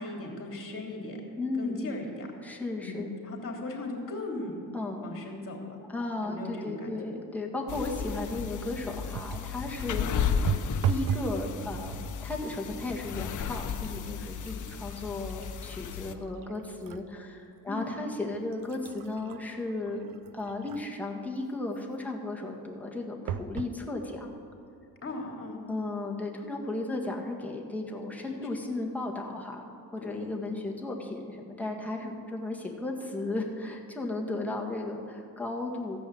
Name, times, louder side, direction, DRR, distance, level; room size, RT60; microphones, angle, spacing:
voice 1, 0.0-1.2 1.6-2.3 2.8-3.0 3.2-4.6 5.0-5.8 6.2-6.9 9.9-10.0 17.6-17.9 25.0-25.6 28.3-28.4 30.0-30.3 32.0-32.2 34.4-34.5, left 2 dB, 35° left, 1 dB, 2.9 m, -38 dB
voice 2, 1.4-2.0 2.4-3.1 4.7-5.1 5.9-10.1 10.9-12.0 12.2-20.1 20.3-24.3 25.7-29.7 29.9-36.0, left 2 dB, 5° left, -1 dB, 1.8 m, -35 dB
sound 1, 7.7-16.1, left 7 dB, 50° left, 0.8 m, -34 dB
sound 2, 9.1-9.6 10.5-11.4 11.7-12.2 13.0-13.1 13.5-17.1 17.6-17.7 18.3-21.1 23.3-23.8 24.5-24.6 24.8-24.9, right 9 dB, 60° right, 0.6 m, -36 dB
14.0 x 5.5 x 8.6 m, 2.7 s
cardioid pair, 90°, 38 cm